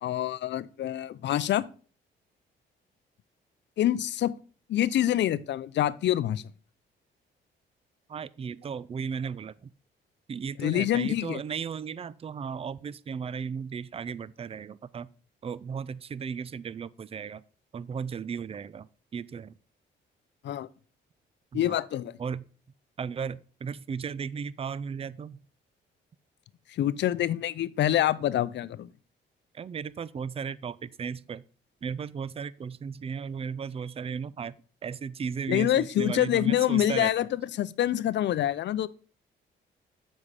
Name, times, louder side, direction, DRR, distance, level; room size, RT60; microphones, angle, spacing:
voice 1, 0.0-1.7 3.8-4.3 4.7-6.4 10.6-11.4 20.4-20.7 21.5-22.2 26.7-28.9 35.5-38.9, left 12 dB, 65° left, 0.5 m, -26 dB
voice 2, 8.1-9.7 10.3-15.1 15.4-17.4 17.7-19.5 21.5-21.8 22.2-22.4 23.0-25.4 29.5-31.4 31.8-34.6 34.8-37.3, right 6 dB, 30° right, 0.4 m, -35 dB
7.5 x 5.5 x 4.8 m
cardioid pair, 90°, 20 cm